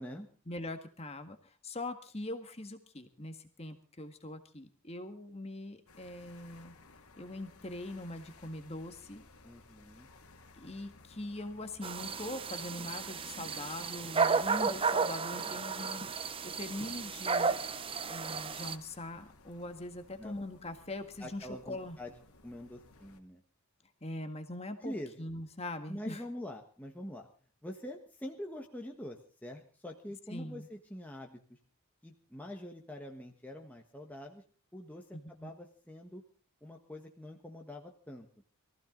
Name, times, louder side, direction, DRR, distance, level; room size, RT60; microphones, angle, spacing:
voice 1, 0.5-6.7 7.2-9.2 10.6-17.5 18.1-22.0 24.0-26.2 30.3-30.7 35.1-35.5, left 1 dB, 30° left, 7 dB, 1.8 m, -42 dB
sound 1, 5.9-23.2, left 3 dB, 80° left, 2.2 m, -58 dB
voice 2, 9.4-10.1 20.2-20.4 21.2-22.1 22.4-23.4 24.8-25.1 25.9-27.3 27.6-31.4 32.0-34.4 34.7-35.0 35.3-36.2 36.6-38.4, left 1 dB, 5° left, 1 dB, 1.4 m, -45 dB
sound 2, 11.8-18.7, right 5 dB, 25° right, 0.7 m, -33 dB
23.0 x 15.0 x 3.9 m, 0.39 s
head